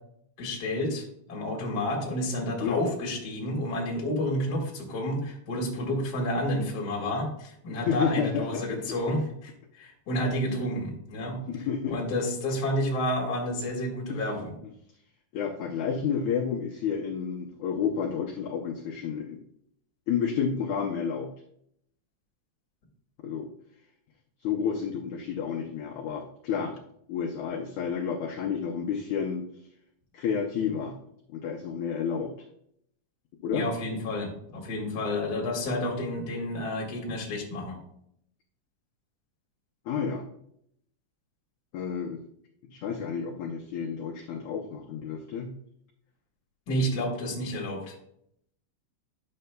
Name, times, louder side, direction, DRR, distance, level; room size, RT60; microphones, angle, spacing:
voice 1, 0.4-11.4 11.9-14.5 33.5-37.8 46.7-47.9, left 1 dB, 40° left, -1 dB, 1.7 m, -30 dB
voice 2, 7.7-8.6 8.9-9.0 10.5-10.7 11.5-12.0 14.1-14.2 15.3-19.4 20.1-21.3 23.2-23.5 24.4-26.7 27.1-29.4 30.1-31.0 31.3-32.3 33.4-33.7 39.9-40.2 41.7-42.2 42.7-45.5, left 7 dB, 75° left, 0 dB, 1.8 m, -30 dB
10.5 x 6.7 x 2.2 m, 0.71 s
omnidirectional pair, 3.9 m